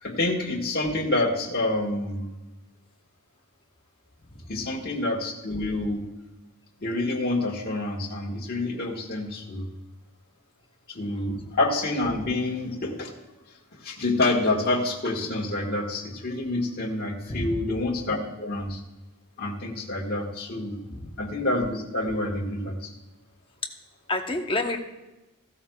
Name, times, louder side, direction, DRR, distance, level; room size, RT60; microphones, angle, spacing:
voice 1, 0.0-2.3 4.5-6.1 6.8-9.7 10.9-13.1 13.8-18.8 19.4-20.8 21.2-22.9, left 2 dB, 45° left, -2 dB, 1.7 m, -27 dB
voice 2, 24.1-24.8, left 2 dB, 25° left, 3 dB, 1.0 m, -28 dB
15.5 x 12.5 x 2.4 m, 1.0 s
head